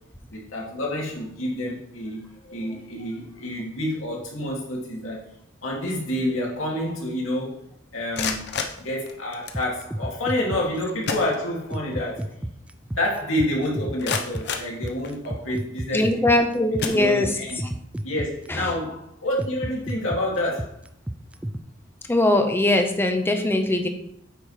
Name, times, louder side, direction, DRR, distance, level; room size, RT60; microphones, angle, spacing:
voice 1, 0.3-5.2 5.6-7.6 7.9-8.4 8.8-12.3 12.9-16.2 16.9-17.6 18.0-20.7, left 1 dB, 90° left, -4 dB, 2.3 m, -28 dB
sound 1, 7.9-9.7 10.6-10.7 11.0-11.9 12.3-12.4 12.9-13.0 13.6-15.5 16.1-16.3 16.8-17.6, left 5 dB, 60° left, 0.8 m, -32 dB
sound 2, 9.5-10.8 11.7-18.5 19.4-21.6, right 1 dB, 5° right, 0.3 m, -31 dB
voice 2, 15.9-17.3 18.5-18.7 22.1-23.9, left 1 dB, 10° left, 5 dB, 0.8 m, -21 dB
8.3 x 3.2 x 5.7 m, 0.71 s
head